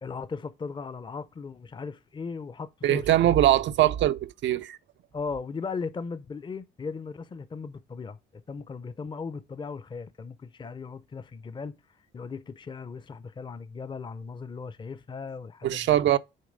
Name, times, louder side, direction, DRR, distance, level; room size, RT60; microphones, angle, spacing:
voice 1, 0.0-3.4 5.1-8.2 8.5-11.7 12.1-15.9, left 5 dB, 25° left, 0.5 m, -37 dB
voice 2, 2.8-4.8 15.6-16.2, right 12 dB, 70° right, 0.5 m, -22 dB
6.5 x 3.9 x 5.0 m
cardioid pair, 90°, 20 cm